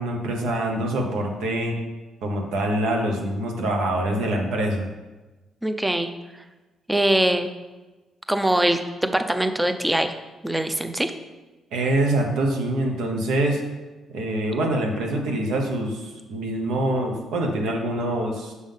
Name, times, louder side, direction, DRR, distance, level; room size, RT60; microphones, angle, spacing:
voice 1, 0.0-1.8 2.2-4.9 11.7-13.6 14.1-18.5, right 1 dB, 85° right, 2 dB, 1.1 m, -25 dB
voice 2, 5.6-6.1 6.9-7.5 8.3-10.2 10.4-11.1, right 1 dB, 10° right, 8 dB, 0.5 m, -22 dB
6.2 x 3.7 x 5.6 m, 1.2 s
cardioid pair, 90°, 0 cm